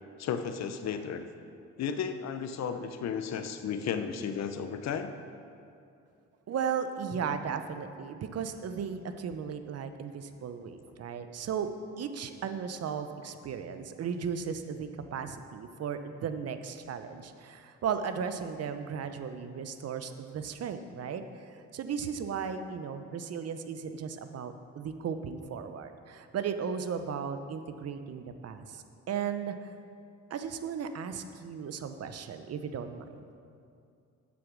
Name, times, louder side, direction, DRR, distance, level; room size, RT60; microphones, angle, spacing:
voice 1, 0.2-1.2 1.8-5.1, left 7 dB, 60° left, 8 dB, 0.8 m, -34 dB
voice 2, 6.5-11.7 12.0-29.7 30.3-33.1, right 7 dB, 55° right, 9 dB, 0.8 m, -36 dB
8.5 x 7.7 x 6.1 m, 2.5 s
cardioid pair, 90°, 30 cm